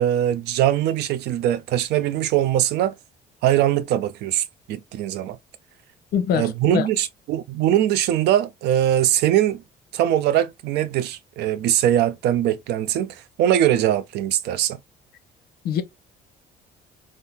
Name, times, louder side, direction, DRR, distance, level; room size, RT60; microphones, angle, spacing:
voice 1, 0.0-3.0 3.4-5.4 6.3-9.6 9.9-14.8, right 11 dB, 80° right, 0.5 m, -21 dB
voice 2, 6.1-6.9 15.6-15.8, left 8 dB, 65° left, 0.7 m, -23 dB
2.7 x 2.6 x 3.5 m
cardioid pair, 110°, 17 cm